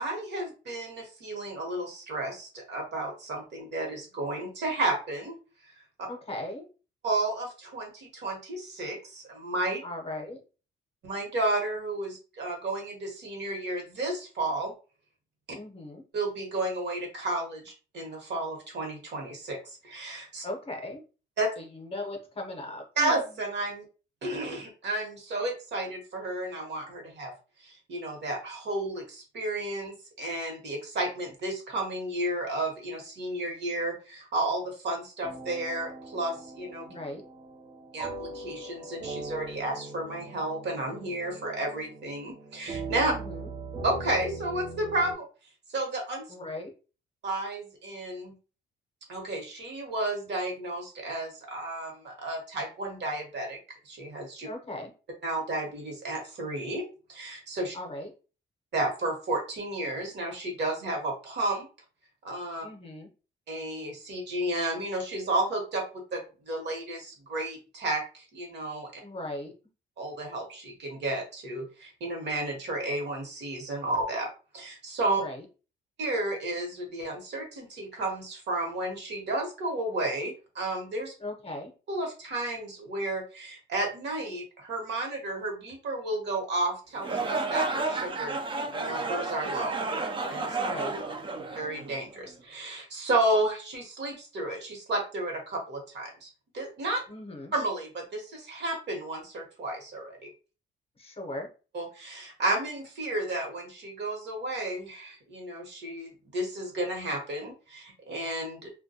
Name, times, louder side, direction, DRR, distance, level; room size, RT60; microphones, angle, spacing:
voice 1, 0.0-5.4 6.0-6.1 7.0-9.8 11.0-14.7 16.1-20.4 21.4-21.5 23.0-23.8 24.2-27.3 27.6-36.9 37.9-43.1 43.8-45.3 45.7-46.3 47.2-48.3 49.1-53.6 53.8-54.5 55.2-57.8 58.7-61.7 62.2-62.6 63.5-69.0 70.0-75.2 76.0-81.1 81.9-88.4 88.7-89.8 90.3-90.6 91.6-97.0 97.5-100.3 101.7-108.7, right 2 dB, 60° right, 1 dB, 1.0 m, -32 dB
voice 2, 6.1-6.7 9.8-10.4 15.5-16.0 20.4-21.0 21.6-23.3 36.9-37.2 43.1-43.5 46.3-46.7 54.4-54.9 57.7-58.1 62.6-63.1 69.0-69.5 75.2-75.4 81.2-81.7 90.5-91.0 97.1-97.5 101.0-101.5, left 1 dB, 30° left, 2 dB, 0.7 m, -38 dB
sound 1, 35.2-45.1, right 2 dB, 40° right, 0.8 m, -41 dB
sound 2, 87.0-92.2, right 3 dB, 25° right, 0.3 m, -31 dB
2.2 x 2.1 x 2.7 m, 0.35 s
cardioid pair, 90°, 20 cm